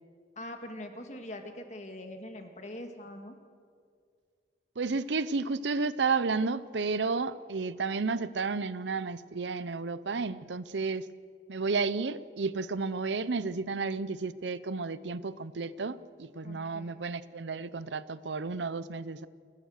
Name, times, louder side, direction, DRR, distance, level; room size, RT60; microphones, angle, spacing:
voice 1, 0.4-3.4 16.4-17.0, left 1 dB, 40° left, 5 dB, 1.9 m, -43 dB
voice 2, 4.8-11.0 11.5-19.3, right 4 dB, 80° right, 16 dB, 0.7 m, -32 dB
28.0 x 15.0 x 6.5 m, 2.1 s
head